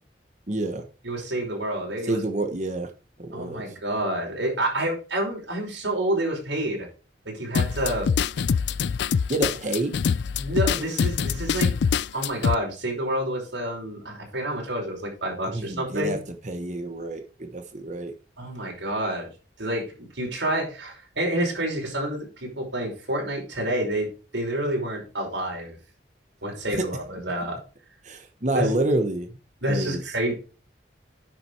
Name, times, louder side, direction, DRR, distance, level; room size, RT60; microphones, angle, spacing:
voice 1, 0.5-0.8 2.1-2.9 3.2-3.6 9.3-9.9 15.4-16.2 16.4-18.1 28.0-29.3 29.7-30.0, right 2 dB, 40° right, 1.1 m, -28 dB
voice 2, 1.0-2.2 3.3-6.9 7.3-8.1 10.4-11.7 12.1-16.2 18.4-19.3 19.6-25.8 26.4-27.6 28.5-28.8 29.6-30.3, right 1 dB, 80° right, 5.4 m, -28 dB
sound 1, 7.5-12.5, left 6 dB, 70° left, 0.4 m, -24 dB
10.0 x 6.1 x 4.6 m
head